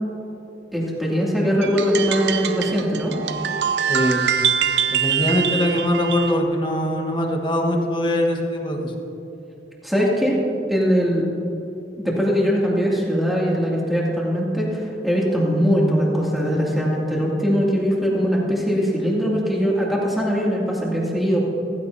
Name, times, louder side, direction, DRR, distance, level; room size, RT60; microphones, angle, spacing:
voice 1, 0.7-3.1 9.8-10.4 10.7-11.3 12.0-21.4, equal, ahead, -5 dB, 2.5 m, -21 dB
sound 1, 1.6-6.4, right 8 dB, 70° right, 0.6 m, -23 dB
voice 2, 3.9-4.2 4.9-8.9, left 1 dB, 25° left, 2 dB, 1.3 m, -22 dB
15.5 x 15.5 x 2.7 m, 3.0 s
head